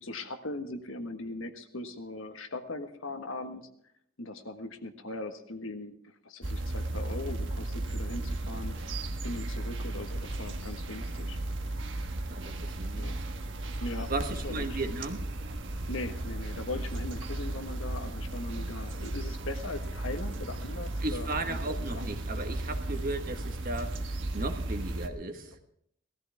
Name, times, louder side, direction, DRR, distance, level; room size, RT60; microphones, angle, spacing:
voice 1, 0.0-3.6 4.2-5.9 6.2-8.7 9.2-11.4 12.9-13.1 13.8-14.1 14.4-14.8 15.9-21.6 21.9-22.0, left 2 dB, 85° left, 7 dB, 1.4 m, -39 dB
sound 1, 6.4-25.1, right 2 dB, 65° right, 1.3 m, -35 dB
voice 2, 12.3-13.0 14.1-15.2 21.0-24.1 24.3-25.6, right 2 dB, 45° right, 6 dB, 1.4 m, -35 dB
19.0 x 14.0 x 3.5 m, 0.70 s
head